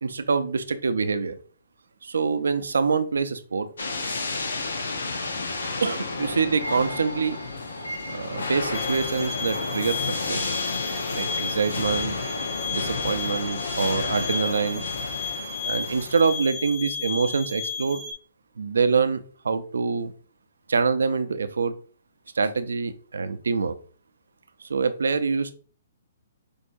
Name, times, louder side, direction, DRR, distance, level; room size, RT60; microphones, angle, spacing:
voice 1, 0.0-1.4 2.0-3.7 5.8-7.4 8.1-10.5 11.1-12.1 12.7-14.9 15.6-18.0 18.6-20.1 20.7-21.7 22.3-23.8 24.6-25.5, right 5 dB, 85° right, 11 dB, 0.5 m, -25 dB
sound 1, 3.8-16.5, left 3 dB, 90° left, 0.9 m, -31 dB
sound 2, 8.7-18.1, left 5 dB, 20° left, 0.7 m, -33 dB
6.3 x 2.7 x 2.6 m, 0.40 s
hypercardioid pair, 145°, 0 cm